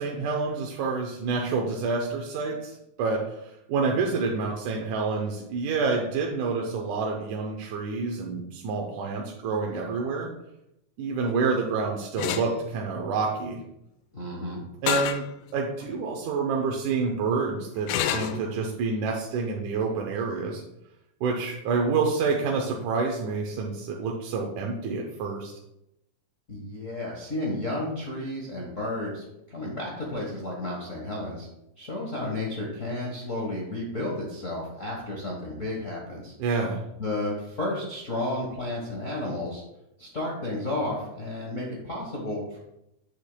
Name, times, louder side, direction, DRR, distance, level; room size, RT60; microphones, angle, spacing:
voice 1, 0.0-10.3 11.0-13.6 14.8-15.3 15.5-20.6 21.2-25.5 36.4-36.8, right 4 dB, 90° right, 0 dB, 2.3 m, -28 dB
sound 1, 12.2-12.5 14.9-15.2 15.8-15.9 17.9-18.4, left 10 dB, 80° left, 1.9 m, -27 dB
voice 2, 14.1-14.6 26.5-31.5 31.8-36.3 37.0-39.6 40.0-42.6, left 1 dB, 55° left, -3 dB, 0.8 m, -32 dB
8.4 x 8.1 x 2.2 m, 0.85 s
omnidirectional pair, 3.4 m